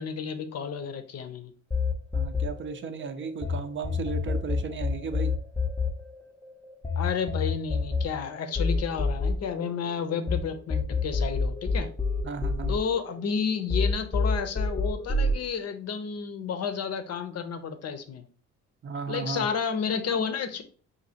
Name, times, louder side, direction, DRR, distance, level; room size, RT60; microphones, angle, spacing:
voice 1, 0.0-1.5 7.0-11.9 12.7-18.2 19.1-20.6, left 6 dB, 55° left, 9 dB, 0.7 m, -31 dB
sound 1, 1.7-3.5 3.8-10.4 10.7-13.4 13.7-15.3, left 3 dB, 10° left, 0.6 m, -27 dB
voice 2, 2.1-5.3 12.2-12.7 18.8-19.5, right 5 dB, 40° right, 9 dB, 0.5 m, -35 dB
5.1 x 2.7 x 2.8 m, 0.43 s
cardioid pair, 90°, 30 cm